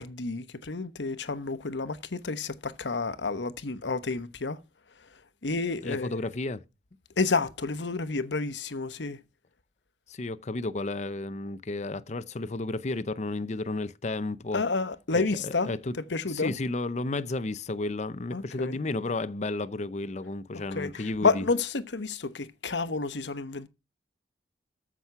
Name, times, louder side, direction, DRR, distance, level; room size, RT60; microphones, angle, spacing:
voice 1, 0.0-4.6 5.4-6.2 7.2-9.2 14.5-15.7 16.1-16.5 18.3-18.8 20.7-23.7, left 3 dB, 85° left, 1.0 m, -30 dB
voice 2, 5.8-6.6 10.1-14.6 15.1-15.9 16.3-21.4, left 2 dB, 40° left, 0.6 m, -32 dB
14.0 x 6.1 x 5.7 m
head